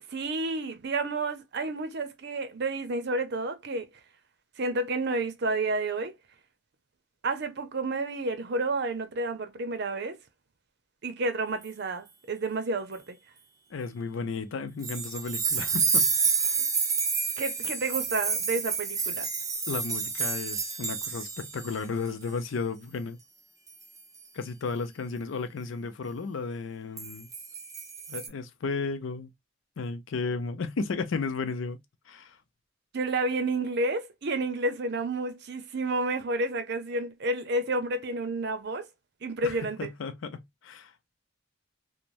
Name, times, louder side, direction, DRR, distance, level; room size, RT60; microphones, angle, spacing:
voice 1, 0.1-3.9 4.6-6.1 7.2-10.2 11.0-13.2 16.6-16.7 17.4-19.3 32.9-38.9 39.2-39.9, right 2 dB, 60° right, 0.6 m, -30 dB
voice 2, 13.7-16.1 16.4-16.6 19.7-23.2 24.3-27.3 28.1-29.3 29.8-31.8 32.1-32.4 39.4-40.9, left 4 dB, 75° left, 0.5 m, -34 dB
sound 1, 14.8-21.8 22.1-22.3 23.7-24.0 27.0-28.3, right 5 dB, 20° right, 0.5 m, -29 dB
3.1 x 2.1 x 2.5 m
head